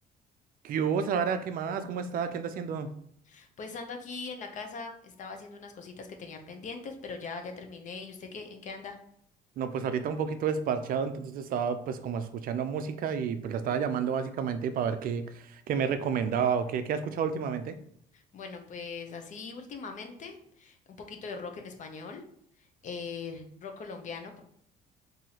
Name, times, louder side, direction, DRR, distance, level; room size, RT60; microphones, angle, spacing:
voice 1, 0.6-2.9 9.6-17.7, right 7 dB, 60° right, 10 dB, 0.4 m, -30 dB
voice 2, 3.3-9.0 18.1-22.2 22.6-24.4, left 4 dB, 45° left, 5 dB, 0.6 m, -41 dB
3.9 x 2.7 x 2.8 m, 0.69 s
cardioid pair, 110°, 17 cm